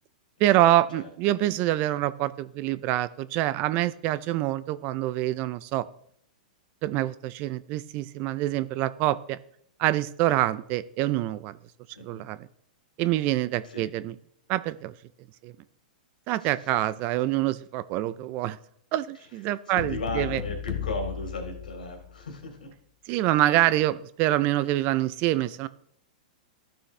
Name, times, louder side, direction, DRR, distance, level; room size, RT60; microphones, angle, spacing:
voice 1, 0.4-5.9 6.8-9.4 9.8-11.6 12.0-12.5 13.0-14.2 14.5-14.9 15.4-15.5 16.3-18.6 18.9-20.4 23.1-25.7, right 15 dB, 40° right, 16 dB, 0.5 m, -26 dB
voice 2, 19.7-22.7, left 2 dB, 85° left, 4 dB, 2.8 m, -36 dB
sound 1, 19.8-22.3, left 10 dB, 65° left, 1.0 m, -35 dB
13.0 x 6.3 x 3.3 m, 0.66 s
hypercardioid pair, 115°, 4 cm